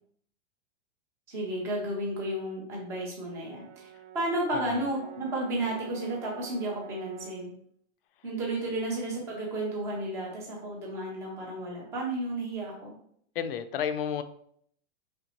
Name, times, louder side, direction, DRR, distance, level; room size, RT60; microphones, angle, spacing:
voice 1, 1.3-3.9 4.1-7.5 8.2-12.9, right 1 dB, 10° right, 0.4 m, -32 dB
Brass instrument, 3.2-7.5, right 9 dB, 80° right, 0.6 m, -47 dB
voice 2, 4.5-4.9 13.3-14.2, left 8 dB, 55° left, 0.4 m, -32 dB
5.0 x 3.2 x 2.9 m
supercardioid pair, 175°, 35 cm